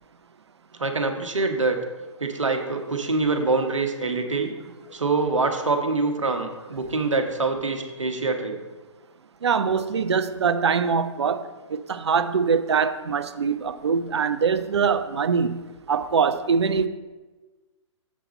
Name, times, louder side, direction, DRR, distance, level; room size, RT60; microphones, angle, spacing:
voice 1, 0.8-1.8 2.2-4.5 4.9-8.6, right 3 dB, 75° right, 5 dB, 1.1 m, -25 dB
voice 2, 9.4-11.4 11.7-15.6 15.9-16.9, right 6 dB, 60° right, 11 dB, 0.5 m, -23 dB
7.2 x 5.8 x 4.1 m, 1.2 s
figure-of-eight pair, 130°, 16 cm